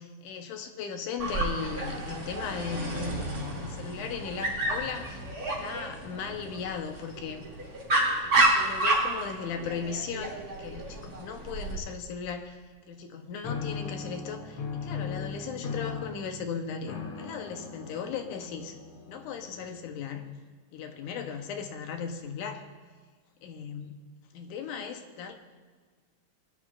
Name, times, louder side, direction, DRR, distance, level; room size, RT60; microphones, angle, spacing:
voice 1, 0.0-7.5 8.2-12.6 12.9-18.7 19.1-20.2 20.7-22.6 23.4-24.0 24.3-25.4, left 6 dB, 85° left, 5 dB, 2.4 m, -37 dB
Dog, 1.2-11.8, right 2 dB, 30° right, 2.7 m, -30 dB
sound 1, 13.4-19.9, left 5 dB, 65° left, 1.7 m, -38 dB
21.0 x 10.5 x 2.5 m, 1.5 s
omnidirectional pair, 3.5 m